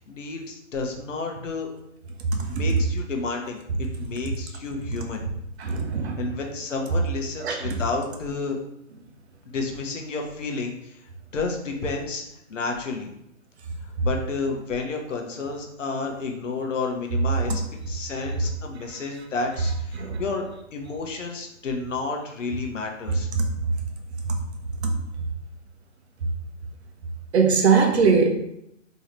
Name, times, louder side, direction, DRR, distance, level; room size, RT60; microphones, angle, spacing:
voice 1, 0.0-1.7 2.5-5.2 6.2-8.6 9.5-11.0 11.3-12.2 12.5-13.1 14.0-17.6 17.9-20.4 20.7-23.3, left 4 dB, 70° left, 2 dB, 0.9 m, -31 dB
voice 2, 5.6-6.2 7.4-7.6 20.0-20.2 24.8-24.9 27.3-28.3, right 5 dB, 55° right, 3 dB, 0.8 m, -20 dB
3.7 x 3.1 x 3.0 m, 0.80 s
figure-of-eight pair, 135°, 39 cm